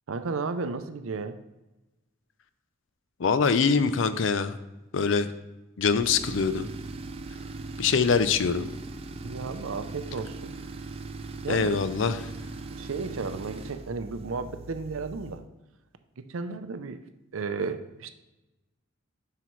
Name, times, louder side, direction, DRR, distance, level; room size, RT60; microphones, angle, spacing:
voice 1, 0.1-1.4 9.2-10.5 11.4-11.8 12.8-15.4 16.2-17.0 17.3-18.1, right 4 dB, 85° right, 10 dB, 0.5 m, -33 dB
voice 2, 3.2-4.6 4.9-5.3 5.8-6.7 7.8-8.7 11.5-12.3, left 5 dB, 70° left, 12 dB, 0.5 m, -24 dB
Tools, 6.0-15.4, right 3 dB, 30° right, 0.3 m, -40 dB
7.8 x 5.7 x 3.1 m, 1.0 s
head